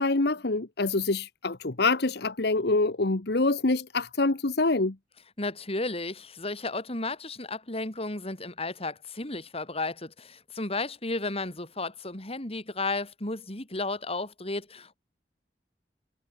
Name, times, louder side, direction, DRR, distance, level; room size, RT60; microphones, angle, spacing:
voice 1, 0.0-5.0, left 3 dB, 65° left, 1.3 m, -26 dB
voice 2, 5.4-15.0, left 2 dB, 35° left, 4.5 m, -33 dB
head